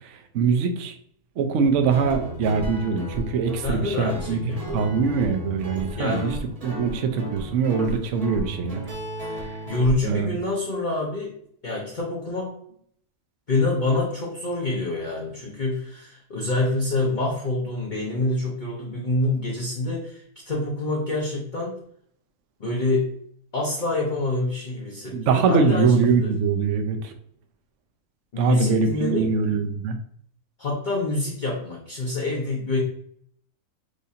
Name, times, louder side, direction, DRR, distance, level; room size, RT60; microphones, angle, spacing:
voice 1, 0.3-0.9 1.4-4.4 4.7-6.4 6.6-8.8 10.0-10.3 25.1-27.1 28.4-30.0, right 5 dB, 60° right, 6 dB, 0.8 m, -23 dB
Guitar, 1.6-9.9, right 1 dB, 25° right, 1.1 m, -34 dB
voice 2, 3.6-4.9 6.0-6.3 9.7-11.4 11.6-12.5 13.5-21.8 22.6-23.1 23.5-26.3 28.3-29.3 30.6-32.8, left 2 dB, 40° left, -3 dB, 0.8 m, -26 dB
6.3 x 2.6 x 2.7 m, 0.64 s
omnidirectional pair, 1.7 m